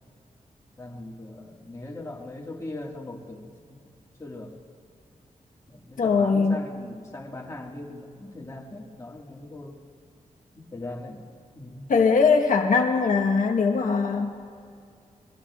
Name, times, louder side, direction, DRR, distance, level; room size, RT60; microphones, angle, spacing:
voice 1, 0.8-3.8 4.2-4.6 5.7-9.8 10.5-11.2 11.5-11.9, left 2 dB, 20° left, -2 dB, 1.7 m, -40 dB
voice 2, 6.0-6.6 11.9-14.3, left 5 dB, 85° left, 2 dB, 1.1 m, -21 dB
23.0 x 21.0 x 2.4 m, 2.4 s
wide cardioid pair, 145°, 13 cm